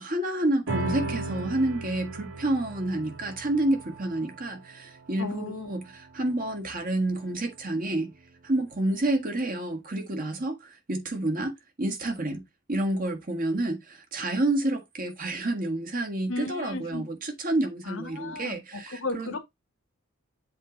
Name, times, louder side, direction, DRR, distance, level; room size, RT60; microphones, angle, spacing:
voice 1, 0.0-8.1 8.4-19.3, right 1 dB, 45° right, 1.6 m, -29 dB
sound 1, 0.7-7.4, right 2 dB, 65° right, 2.3 m, -37 dB
voice 2, 5.2-5.7 16.3-17.0 17.8-19.4, left 2 dB, 75° left, 1.3 m, -35 dB
7.8 x 3.1 x 5.1 m
head